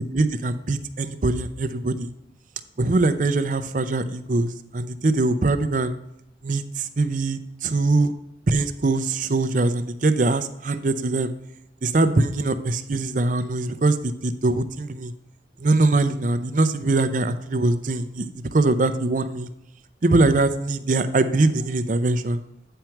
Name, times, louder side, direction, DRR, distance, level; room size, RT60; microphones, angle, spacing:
voice 1, 0.1-2.1 2.8-5.9 6.4-8.1 8.5-11.3 11.8-14.0 14.2-15.1 15.6-19.5 20.0-22.4, right 2 dB, 45° right, 10 dB, 0.5 m, -22 dB
9.1 x 4.5 x 5.9 m, 0.81 s
head